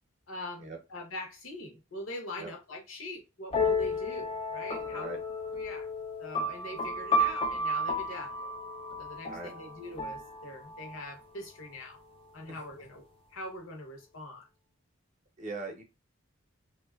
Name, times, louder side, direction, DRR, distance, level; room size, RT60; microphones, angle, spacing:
voice 1, 0.3-5.1 5.4-5.9 6.2-8.5 9.0-12.0 12.3-13.0 13.3-14.4, left 1 dB, 75° left, 0.7 m, -42 dB
sound 1, 3.5-11.1, left 1 dB, 25° left, 0.3 m, -32 dB
voice 2, 4.8-5.2 9.3-9.5 12.5-12.6 15.4-15.8, right 3 dB, 35° right, 0.6 m, -40 dB
2.6 x 2.2 x 2.2 m
head